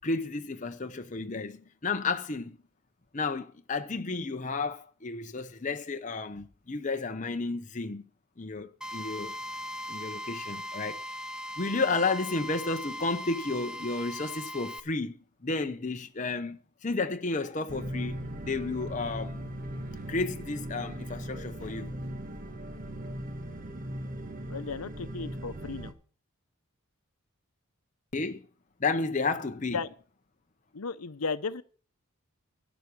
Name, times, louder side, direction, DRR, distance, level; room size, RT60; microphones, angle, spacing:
voice 1, 0.0-2.6 3.1-8.1 8.4-9.4 9.9-11.0 11.6-19.4 20.1-22.0 28.1-28.5 28.8-29.8, left 3 dB, 35° left, 0.7 m, -32 dB
Drill, 8.8-14.8, left 1 dB, 5° right, 0.6 m, -39 dB
sound 1, 17.7-25.9, right 1 dB, 40° right, 1.2 m, -38 dB
voice 2, 24.5-25.9 29.7-29.9 30.7-31.6, left 4 dB, 85° left, 0.8 m, -34 dB
11.5 x 6.1 x 8.4 m
head